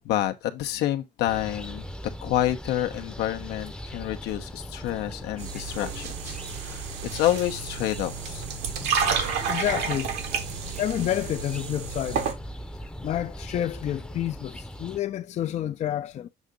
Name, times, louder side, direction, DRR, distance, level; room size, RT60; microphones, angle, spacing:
voice 1, 0.0-1.9 2.2-8.4, left 13 dB, 85° left, 0.9 m, -28 dB
sound 1, 1.3-15.0, equal, 5° left, 0.6 m, -40 dB
sound 2, 5.4-12.3, right 6 dB, 80° right, 1.5 m, -31 dB
voice 2, 9.5-10.2 10.8-12.3 13.0-16.3, left 11 dB, 45° left, 0.4 m, -29 dB
7.3 x 2.7 x 5.1 m
cardioid pair, 110°, 17 cm